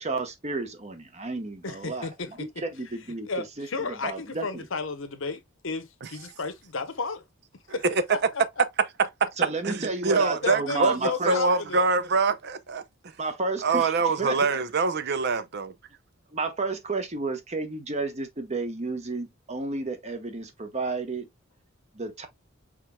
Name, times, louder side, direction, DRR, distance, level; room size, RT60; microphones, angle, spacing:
voice 1, 0.0-2.1 2.4-3.3 3.6-4.7 9.4-11.4 13.2-13.9 14.2-14.4 16.3-21.3 21.9-22.3, right 3 dB, 35° right, 1.0 m, -32 dB
voice 2, 1.6-2.3 3.3-7.2 7.7-7.8 8.1-8.4 10.4-11.8, left 4 dB, 70° left, 0.9 m, -33 dB
voice 3, 7.7-8.0 9.6-11.0 11.3-12.8 13.6-15.4, right 4 dB, 55° right, 0.6 m, -24 dB
4.9 x 4.3 x 2.2 m
head